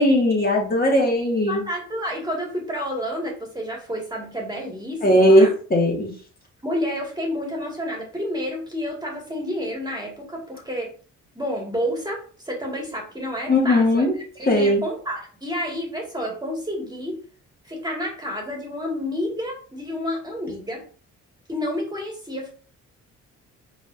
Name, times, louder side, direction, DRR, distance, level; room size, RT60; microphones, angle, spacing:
voice 1, 0.0-1.6 5.0-6.1 13.5-14.1 14.5-14.8, left 1 dB, 30° left, -2 dB, 1.9 m, -18 dB
voice 2, 1.5-5.5 6.6-10.9 11.4-14.1 14.4-17.2 17.6-20.8 21.5-22.5, equal, 15° right, -1 dB, 1.8 m, -30 dB
5.0 x 4.1 x 2.5 m, 0.40 s
cardioid pair, 90°, 30 cm